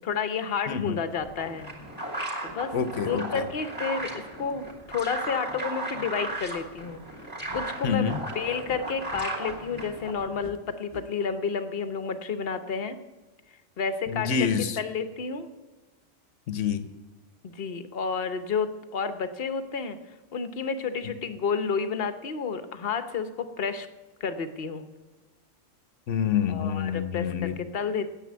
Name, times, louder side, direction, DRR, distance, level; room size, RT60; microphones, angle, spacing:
voice 1, 0.0-1.7 2.4-2.7 3.0-7.0 7.5-13.0 13.8-14.3 14.8-15.5 17.4-20.0 20.3-23.9 24.2-24.9 26.5-28.1, left 5 dB, 50° left, 10 dB, 1.1 m, -30 dB
voice 2, 0.7-1.0 2.7-3.4 7.8-8.2 14.1-14.8 16.5-16.9 21.0-21.1 26.1-27.6, left 7 dB, 70° left, 12 dB, 1.2 m, -27 dB
sound 1, 1.1-10.4, right 1 dB, 10° right, 2.7 m, -36 dB
sound 2, 7.5-11.0, left 1 dB, 30° left, 1.0 m, -47 dB
9.6 x 8.1 x 9.5 m, 1.2 s
omnidirectional pair, 1.3 m